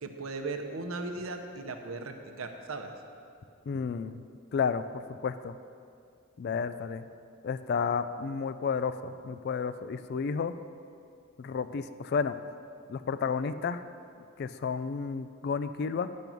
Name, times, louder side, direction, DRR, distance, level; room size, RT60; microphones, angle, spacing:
voice 1, 0.0-2.9, right 3 dB, 80° right, 5 dB, 0.7 m, -37 dB
voice 2, 3.7-4.2 4.5-4.8 5.2-5.6 6.4-7.0 7.4-10.5 11.4-12.4 12.9-13.8 14.4-16.1, left 5 dB, 50° left, 12 dB, 0.3 m, -31 dB
10.5 x 5.3 x 6.1 m, 2.4 s
head